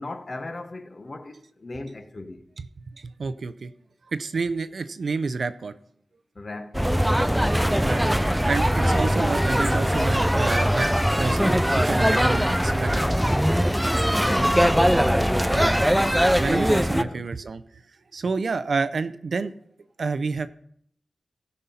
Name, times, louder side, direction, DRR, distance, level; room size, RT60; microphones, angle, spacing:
voice 1, 0.0-2.5 6.3-7.5 14.2-16.1 16.8-17.2, left 2 dB, 35° left, 0.8 m, -37 dB
voice 2, 3.0-3.7 4.1-5.7 7.8-8.0 8.5-10.9 11.2-13.0 15.5-15.7 16.4-17.6 18.1-19.5 20.0-20.5, right 4 dB, 60° right, 0.5 m, -29 dB
sound 1, 6.7-17.0, equal, 5° right, 0.3 m, -21 dB
16.0 x 5.4 x 4.2 m
wide cardioid pair, 145°, 0 cm